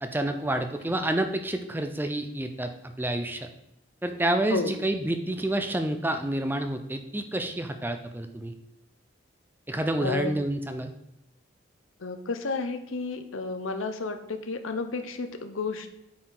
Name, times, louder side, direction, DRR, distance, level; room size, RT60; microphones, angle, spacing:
voice 1, 0.0-3.5 4.0-8.5 9.7-10.9, right 1 dB, 10° right, 7 dB, 0.5 m, -29 dB
voice 2, 10.0-10.3 12.0-15.9, left 4 dB, 85° left, 8 dB, 0.7 m, -31 dB
8.4 x 4.5 x 3.9 m, 0.83 s
head